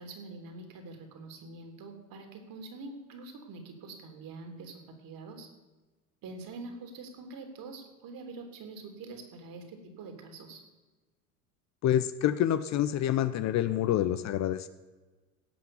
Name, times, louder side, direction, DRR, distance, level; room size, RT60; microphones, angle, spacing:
voice 1, 0.0-5.5 6.2-10.6, right 3 dB, 50° right, 4 dB, 3.2 m, -45 dB
voice 2, 11.8-14.7, left 11 dB, 40° left, 13 dB, 0.7 m, -27 dB
17.0 x 5.8 x 7.1 m, 1.2 s
hypercardioid pair, 80°, 44 cm